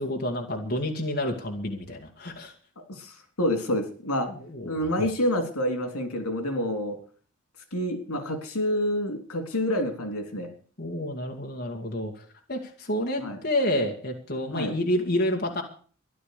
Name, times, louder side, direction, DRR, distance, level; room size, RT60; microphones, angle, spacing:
voice 1, 0.0-2.5 4.5-4.9 10.8-15.6, left 1 dB, 45° left, 1 dB, 2.1 m, -29 dB
voice 2, 2.9-4.3 4.7-7.0 7.7-10.5 13.2-13.4 14.5-14.8, left 1 dB, 90° left, 6 dB, 3.6 m, -28 dB
14.0 x 11.5 x 6.7 m, 0.43 s
head